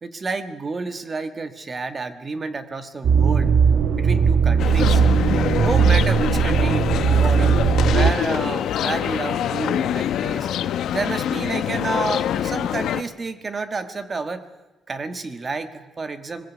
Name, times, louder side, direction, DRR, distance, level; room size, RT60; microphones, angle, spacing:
voice 1, 0.0-3.5 4.0-5.0 5.5-7.6 7.9-10.5 10.9-14.4 14.9-16.4, right 3 dB, 30° right, 9 dB, 1.4 m, -30 dB
sound 1, 3.0-8.1, right 6 dB, 65° right, 1.2 m, -18 dB
sound 2, 4.6-13.0, left 10 dB, 75° left, 0.8 m, -25 dB
22.0 x 16.0 x 8.2 m, 1.2 s
cardioid pair, 145°, 0 cm